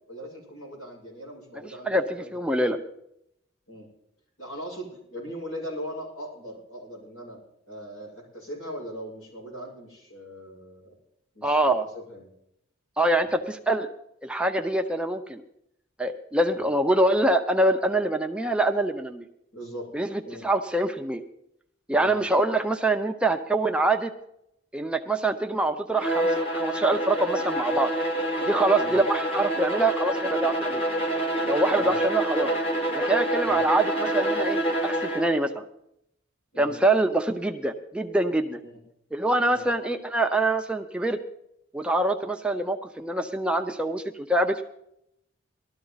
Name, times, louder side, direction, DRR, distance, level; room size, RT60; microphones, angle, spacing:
voice 1, 0.1-2.8 3.7-3.9 4.4-7.4 7.7-10.9 11.3-12.3 13.2-13.4 16.5-16.7 19.5-19.9 20.2-20.5 21.9-22.2 28.8-29.0 31.7-32.0 33.4-33.6 36.5-36.8 38.6-38.8 39.5-39.7, equal, 75° left, -3 dB, 6.8 m, -40 dB
voice 2, 1.9-2.8 11.4-11.8 13.0-13.9 14.2-15.4 16.0-19.2 19.9-21.2 21.9-24.1 24.7-27.9 28.5-30.8 31.4-32.5 32.9-35.6 36.6-38.6 39.1-41.2 41.7-44.6, right 2 dB, 5° right, 5 dB, 0.6 m, -25 dB
Bowed string instrument, 25.9-35.4, right 1 dB, 30° left, 1.5 m, -27 dB
19.0 x 13.0 x 4.0 m, 0.77 s
head